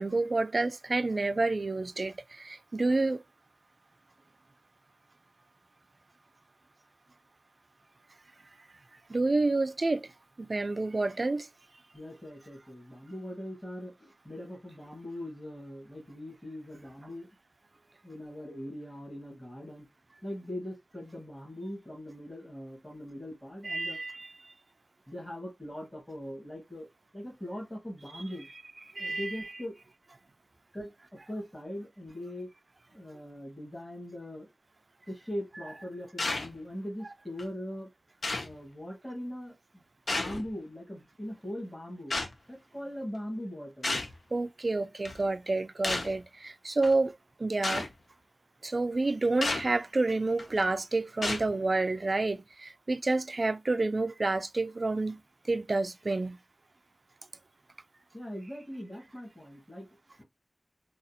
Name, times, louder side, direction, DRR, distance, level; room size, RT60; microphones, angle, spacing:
voice 1, 0.0-3.2 9.1-10.1 10.4-11.5 23.6-24.5 29.0-29.3 44.3-47.1 47.4-47.9 48.6-55.2 55.5-56.4, right 2 dB, 55° right, 0.3 m, -29 dB
voice 2, 11.9-17.3 18.0-19.9 20.2-24.0 25.1-26.9 27.1-28.5 29.0-29.8 30.7-32.5 32.9-34.5 35.1-37.9 38.4-39.8 40.1-42.1 42.5-43.9 58.1-59.9, left 1 dB, 20° left, 1.6 m, -41 dB
sound 1, 36.2-36.5 37.4-37.5 38.2-38.5 40.1-40.5 42.1-42.3 43.8-44.2 45.0-45.2 45.8-46.2 46.8-46.9 47.6-47.9 49.4-49.7 50.4-50.6 51.2-51.5, left 2 dB, 80° left, 0.6 m, -31 dB
4.0 x 2.3 x 2.7 m
wide cardioid pair, 65°, 0 cm